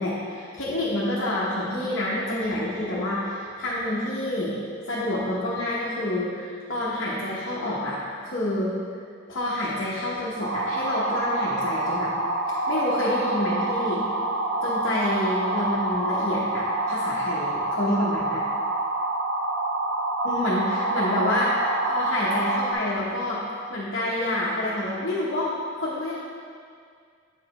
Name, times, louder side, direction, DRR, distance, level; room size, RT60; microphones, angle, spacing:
voice 1, 0.0-4.6 4.9-8.7 9.3-12.1 12.5-14.0 14.6-18.4 20.2-23.4 23.7-26.1, left 1 dB, 55° left, -8 dB, 0.9 m, -28 dB
sound 1, 10.4-22.7, right 2 dB, 55° right, 0.6 m, -27 dB
8.2 x 4.8 x 3.2 m, 2.2 s
head